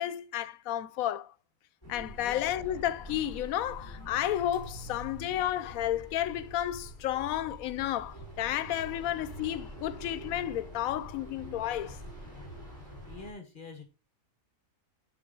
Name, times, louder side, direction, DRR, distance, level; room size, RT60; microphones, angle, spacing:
voice 1, 0.0-1.3 1.9-12.0, left 12 dB, 90° left, 1.0 m, -32 dB
sound 1, 1.8-13.3, equal, 20° left, 4.3 m, -45 dB
voice 2, 2.2-2.5 13.1-13.9, left 3 dB, 40° left, 1.3 m, -45 dB
7.6 x 6.0 x 3.8 m
omnidirectional pair, 1.4 m